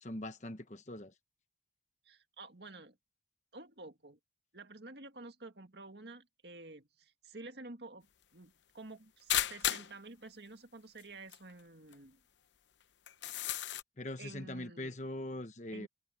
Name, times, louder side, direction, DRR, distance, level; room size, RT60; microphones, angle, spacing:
voice 1, 0.0-1.1 14.0-15.9, left 1 dB, 40° left, 1.2 m, -42 dB
voice 2, 2.0-3.0 3.5-4.2 4.5-12.2 14.2-15.0 15.7-15.9, right 2 dB, 70° right, 2.0 m, -50 dB
sound 1, 9.3-10.0 11.0-11.1 11.3-11.4 11.9-12.0 13.1-13.8, left 11 dB, 85° left, 0.8 m, -33 dB
head